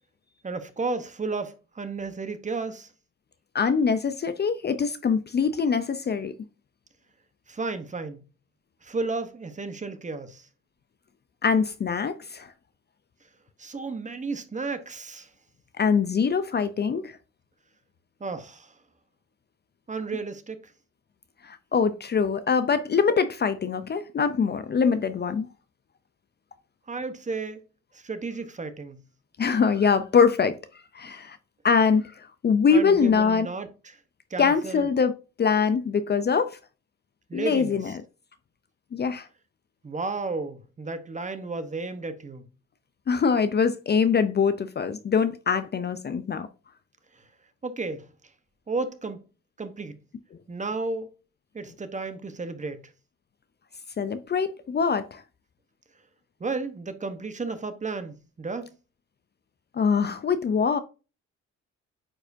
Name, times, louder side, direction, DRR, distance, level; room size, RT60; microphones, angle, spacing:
voice 1, 0.4-2.9 7.5-8.2 8.8-10.5 13.6-15.3 18.2-18.7 19.9-20.7 26.9-27.6 27.9-29.0 32.7-34.0 34.3-34.8 37.3-37.8 39.8-42.4 47.6-48.1 48.7-49.2 49.6-50.0 50.5-51.1 51.5-52.8 56.4-58.7, right 3 dB, 25° right, 0.9 m, -33 dB
voice 2, 3.5-6.3 11.4-12.5 15.8-17.1 21.4-25.5 29.4-30.6 30.9-31.4 31.6-33.5 34.4-35.1 35.4-36.6 37.3-37.9 38.9-39.3 43.1-46.5 54.0-55.2 59.7-60.8, left 6 dB, 35° left, 0.5 m, -23 dB
8.7 x 4.8 x 2.6 m
cardioid pair, 90°, 30 cm